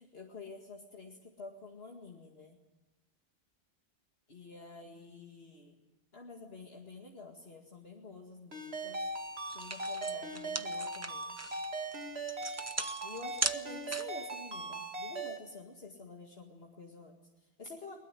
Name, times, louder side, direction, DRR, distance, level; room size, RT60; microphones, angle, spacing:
voice 1, 0.0-2.6 4.3-5.8 6.1-9.1 9.5-11.4 13.0-18.0, left 3 dB, 75° left, 1 dB, 2.3 m, -49 dB
Ringtone, 8.5-15.4, right 2 dB, 90° right, 2.9 m, -39 dB
sound 1, 9.1-9.2 9.5-14.3, right 2 dB, 15° right, 0.7 m, -38 dB
22.0 x 20.0 x 9.8 m, 1.1 s
omnidirectional pair, 1.0 m